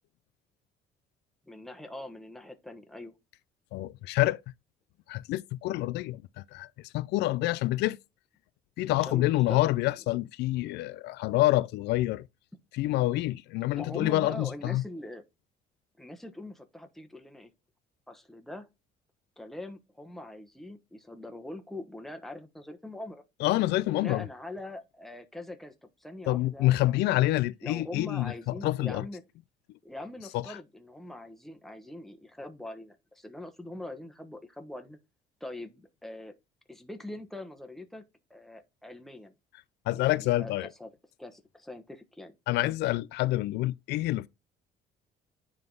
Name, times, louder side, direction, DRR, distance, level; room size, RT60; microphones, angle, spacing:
voice 1, 1.5-3.1 8.9-9.6 13.8-15.2 16.0-17.5 18.1-18.7 19.4-23.2 23.9-25.7 26.0-27.3 27.6-29.2 29.8-35.0 35.4-36.3 36.7-38.0 38.3-39.3 39.9-40.9 41.2-42.3 42.6-42.7, left 1 dB, ahead, 1.1 m, -43 dB
voice 2, 3.7-4.4 5.1-8.0 8.8-12.3 12.7-14.8 23.4-24.3 26.3-29.0 30.3-30.6 39.9-40.7 42.5-44.3, left 17 dB, 80° left, 0.4 m, -27 dB
9.6 x 3.6 x 3.8 m
cardioid pair, 110°, 17 cm